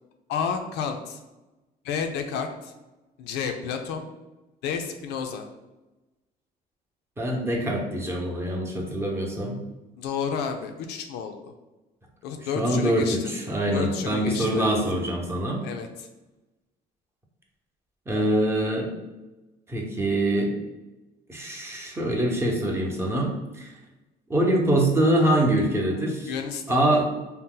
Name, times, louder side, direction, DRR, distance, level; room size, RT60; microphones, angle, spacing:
voice 1, 0.3-1.2 1.8-2.7 3.2-4.1 4.6-5.5 10.0-11.5 12.2-13.3 13.7-14.8 15.6-16.1 26.3-27.0, left 6 dB, 90° left, 5 dB, 0.4 m, -31 dB
voice 2, 7.2-9.6 12.4-15.6 18.1-18.9 19.7-20.5 21.3-23.7 24.3-26.3 26.7-27.1, right 1 dB, 15° right, -1 dB, 0.7 m, -24 dB
2.7 x 2.1 x 3.7 m, 1.1 s
cardioid pair, 110°, 17 cm